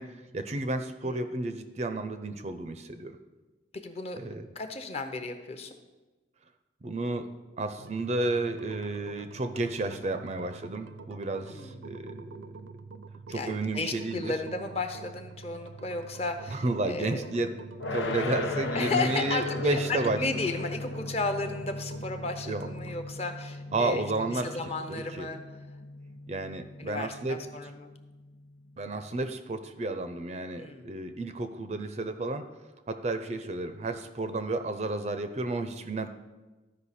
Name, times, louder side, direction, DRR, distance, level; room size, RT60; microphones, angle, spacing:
voice 1, 0.0-3.2 4.2-4.5 6.8-12.5 13.3-14.3 16.5-17.6 17.9-20.5 22.4-22.7 23.7-25.3 26.3-27.4 28.8-32.5 32.9-36.1, right 2 dB, 35° right, 9 dB, 0.4 m, -32 dB
voice 2, 3.7-4.2 4.5-5.7 11.5-11.8 13.3-17.2 18.7-24.0 24.3-25.4 26.8-27.9 30.6-30.9, left 3 dB, 30° left, 7 dB, 0.7 m, -34 dB
sound 1, 7.7-23.1, right 4 dB, 80° right, 0.6 m, -46 dB
sound 2, 17.8-28.8, left 2 dB, 80° left, 0.9 m, -38 dB
13.5 x 5.2 x 4.2 m, 1.2 s
head